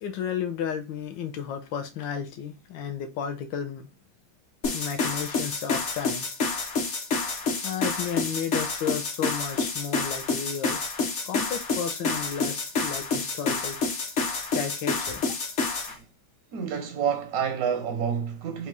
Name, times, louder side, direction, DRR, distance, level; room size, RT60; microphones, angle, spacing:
voice 1, 0.0-3.9 4.7-6.3 7.6-10.8 11.2-13.8 14.5-15.2, left 8 dB, 75° left, 1.4 m, -33 dB
sound 1, 4.6-15.9, left 4 dB, 50° left, 0.9 m, -28 dB
voice 2, 16.5-18.7, right 7 dB, 70° right, 0.9 m, -28 dB
4.1 x 2.4 x 4.7 m
omnidirectional pair, 2.1 m